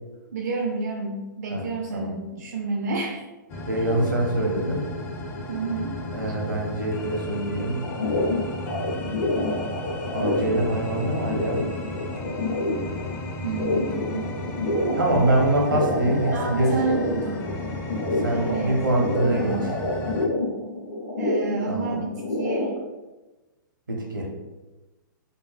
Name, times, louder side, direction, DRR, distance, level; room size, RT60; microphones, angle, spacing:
voice 1, 0.3-3.2 3.7-4.2 5.5-6.0 13.4-14.3 16.3-17.5 18.3-18.8 19.2-19.7 21.2-22.7, right 3 dB, 55° right, 0 dB, 0.5 m, -30 dB
sound 1, 3.5-20.3, left 1 dB, 20° left, 0.5 m, -34 dB
voice 2, 3.7-4.9 6.1-7.8 10.1-11.6 14.9-16.7 18.2-19.5 21.7-22.0 23.9-24.3, right 1 dB, 75° right, -1 dB, 1.0 m, -24 dB
sound 2, 7.8-22.7, left 1 dB, 65° left, 0.8 m, -28 dB
5.2 x 2.2 x 2.4 m, 1.1 s
figure-of-eight pair, 110°, 11 cm